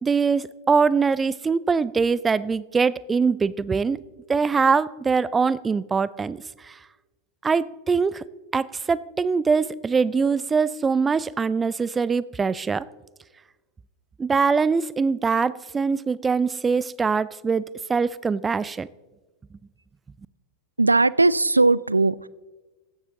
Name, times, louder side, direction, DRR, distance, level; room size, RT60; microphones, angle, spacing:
voice 1, 0.0-4.0 4.3-6.7 7.4-8.2 8.5-12.9 14.2-18.9, right 5 dB, 15° right, 20 dB, 0.4 m, -23 dB
voice 2, 20.8-22.3, right 3 dB, 80° right, 21 dB, 0.3 m, -19 dB
16.0 x 12.0 x 3.8 m, 1.2 s
figure-of-eight pair, 90°, 0 cm